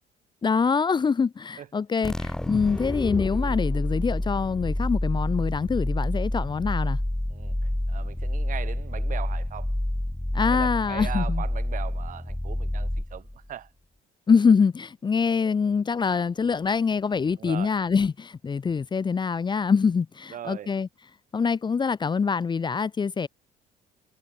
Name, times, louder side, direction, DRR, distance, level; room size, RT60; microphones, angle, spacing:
voice 1, 0.4-7.0 10.3-11.4 14.3-20.9 21.3-23.3, left 5 dB, 25° left, 0.9 m, -24 dB
sound 1, 2.0-13.5, left 1 dB, 5° left, 0.4 m, -28 dB
voice 2, 7.9-9.7 10.5-13.2 13.5-13.7 17.4-17.7 20.3-20.7, right 10 dB, 50° right, 1.3 m, -39 dB
cardioid pair, 110°, 17 cm